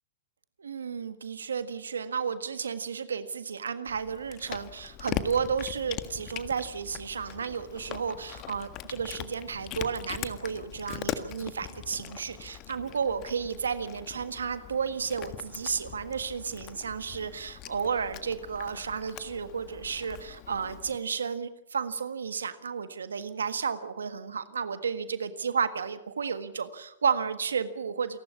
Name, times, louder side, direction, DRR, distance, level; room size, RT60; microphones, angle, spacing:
voice 1, 0.6-28.2, right 6 dB, 90° right, 11 dB, 1.6 m, -32 dB
Cat, 3.9-21.0, left 12 dB, 35° left, 1.6 m, -41 dB
28.5 x 12.0 x 8.4 m, 0.83 s
hypercardioid pair, 125°, 0 cm